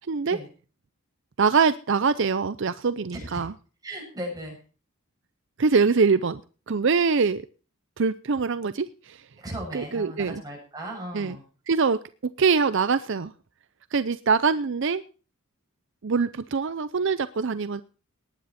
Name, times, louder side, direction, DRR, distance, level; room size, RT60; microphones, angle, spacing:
voice 1, 0.1-0.4 1.4-3.5 5.6-6.4 6.7-7.4 8.0-9.2 9.7-10.4 11.1-11.3 11.7-13.3 13.9-15.0 16.0-17.8, right 5 dB, 60° right, 14 dB, 0.5 m, -23 dB
voice 2, 3.1-3.5 3.8-4.6 9.4-11.4, right 1 dB, 15° right, -1 dB, 7.5 m, -37 dB
19.0 x 9.5 x 4.3 m, 0.38 s
head